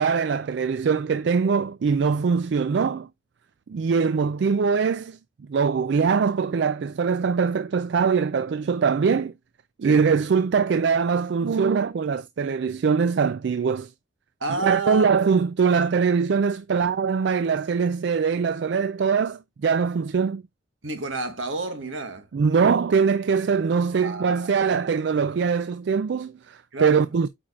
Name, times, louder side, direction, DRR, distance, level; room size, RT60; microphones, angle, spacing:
voice 1, 0.0-3.1 3.7-5.2 5.5-9.3 9.8-13.9 14.6-20.4 22.3-27.3, right 5 dB, 60° right, 0.3 m, -22 dB
voice 2, 14.4-15.1 20.8-22.3 24.0-24.6 26.7-27.1, right 3 dB, 80° right, 1.5 m, -30 dB
8.6 x 4.6 x 2.3 m
head